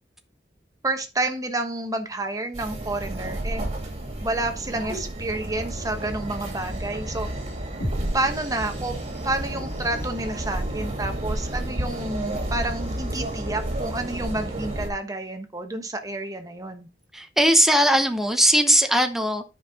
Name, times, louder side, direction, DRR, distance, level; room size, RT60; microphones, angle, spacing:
voice 1, 0.8-3.6 4.2-7.3 8.1-8.9 9.2-16.9, right 2 dB, 20° right, 1.2 m, -29 dB
sound 1, 2.5-14.9, right 1 dB, 35° right, 2.5 m, -31 dB
sound 2, 7.8-11.8, equal, 60° left, 2.1 m, -39 dB
voice 2, 17.1-19.4, right 1 dB, ahead, 0.8 m, -19 dB
9.6 x 5.5 x 3.6 m
head